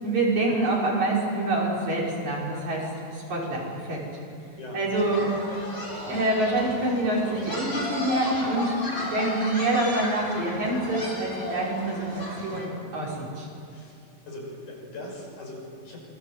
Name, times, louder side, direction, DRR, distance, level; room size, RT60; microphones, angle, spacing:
voice 1, 0.0-4.0 4.7-5.3 6.1-13.5, right 2 dB, 55° right, -4 dB, 6.7 m, -26 dB
sound 1, 4.9-12.7, left 1 dB, 20° left, 4.5 m, -34 dB
voice 2, 12.4-13.0 13.7-16.0, left 1 dB, 60° left, -1 dB, 7.7 m, -41 dB
26.5 x 24.5 x 8.0 m, 2.5 s
omnidirectional pair, 4.0 m